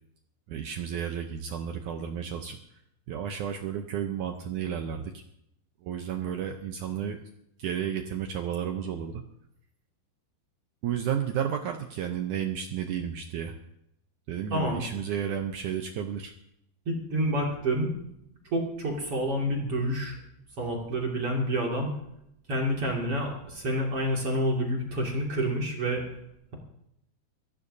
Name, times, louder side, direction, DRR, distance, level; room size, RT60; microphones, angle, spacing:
voice 1, 0.5-2.6 3.1-5.2 5.8-7.3 7.6-9.2 10.8-13.6 14.3-16.3, right 8 dB, 75° right, 5 dB, 1.8 m, -32 dB
voice 2, 14.5-14.8 16.9-17.9 18.5-20.2 20.6-21.9 22.5-26.0, equal, 40° right, -2 dB, 2.8 m, -28 dB
22.5 x 15.0 x 2.7 m, 0.78 s
omnidirectional pair, 4.5 m